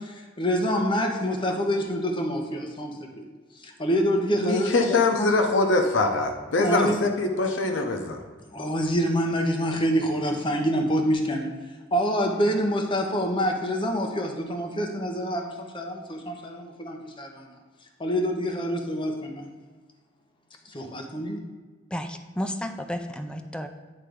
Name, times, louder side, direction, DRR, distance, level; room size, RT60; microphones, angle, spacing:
voice 1, 0.0-3.2 3.6-4.7 5.2-5.3 6.6-7.0 8.5-11.5 11.9-17.5 18.0-19.5 20.7-21.4, equal, 25° left, 2 dB, 0.9 m, -26 dB
voice 2, 4.4-8.2, left 3 dB, 80° left, 4 dB, 0.7 m, -23 dB
voice 3, 21.9-23.7, equal, 5° left, 6 dB, 0.4 m, -32 dB
9.6 x 3.3 x 5.0 m, 1.4 s
head